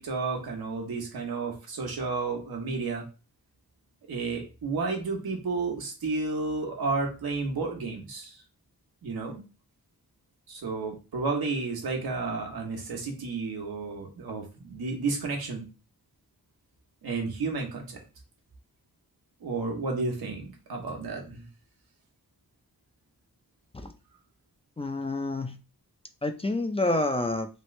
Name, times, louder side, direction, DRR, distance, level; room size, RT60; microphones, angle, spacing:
voice 1, 0.0-3.1 4.1-8.4 9.0-9.4 10.5-15.7 17.0-18.0 19.4-21.5, right 4 dB, 90° right, 1.1 m, -32 dB
voice 2, 24.8-25.6 26.2-27.5, left 2 dB, 15° left, 0.4 m, -28 dB
3.1 x 2.5 x 3.1 m
cardioid pair, 70°, 36 cm